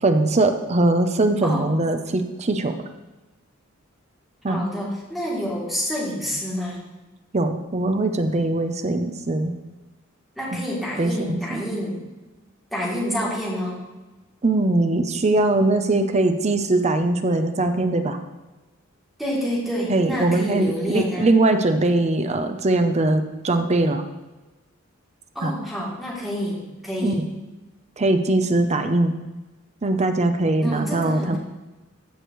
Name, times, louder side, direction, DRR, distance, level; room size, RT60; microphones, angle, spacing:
voice 1, 0.0-2.7 4.4-4.6 7.3-9.5 10.5-10.6 11.0-11.6 14.4-18.2 19.9-24.0 25.4-25.5 27.0-27.3 28.0-29.1 29.8-31.4, right 2 dB, 35° right, 8 dB, 0.6 m, -21 dB
voice 2, 4.5-6.8 10.4-12.0 12.7-13.8 19.2-21.3 25.3-27.2 30.6-31.4, equal, ahead, -6 dB, 2.9 m, -28 dB
14.5 x 6.5 x 3.1 m, 1.1 s
head